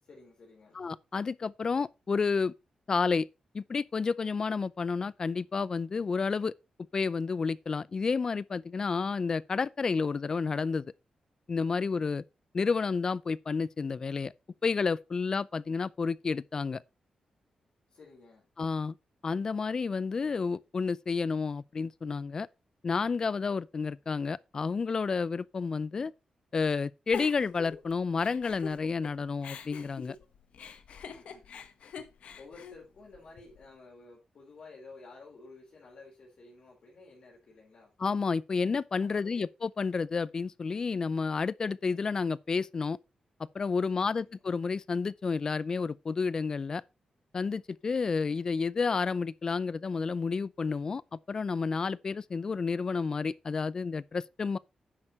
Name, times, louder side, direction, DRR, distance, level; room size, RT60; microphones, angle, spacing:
voice 1, 0.0-0.9 17.9-18.5 31.0-31.6 32.4-37.9 39.0-39.5 43.9-44.4, left 3 dB, 50° left, 4.2 m, -53 dB
voice 2, 0.7-2.5 2.9-3.3 3.5-6.5 6.9-10.9 11.5-12.2 12.5-14.3 14.6-16.8 18.6-19.0 19.2-22.5 22.8-26.1 26.5-30.2 38.0-43.0 43.5-46.8 47.3-54.6, left 5 dB, 35° left, 0.4 m, -30 dB
Giggle, 27.1-29.1 29.4-33.6, left 6 dB, 75° left, 1.2 m, -45 dB
10.0 x 6.5 x 4.2 m
wide cardioid pair, 155°, 2 cm